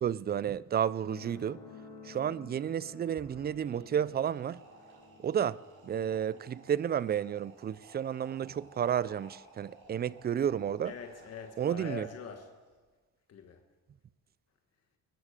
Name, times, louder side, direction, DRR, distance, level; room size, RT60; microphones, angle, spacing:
voice 1, 0.0-1.6 2.0-4.6 5.2-10.9 11.6-12.1, right 9 dB, 35° right, 0.4 m, -32 dB
sound 1, 1.1-8.1 9.0-9.1, left 4 dB, 70° left, 3.7 m, -54 dB
sound 2, 3.1-12.7, right 3 dB, 80° right, 4.9 m, -57 dB
voice 2, 10.8-12.5 13.3-13.6, left 6 dB, 55° left, 1.4 m, -44 dB
21.5 x 8.4 x 6.7 m
cardioid pair, 90°, 30 cm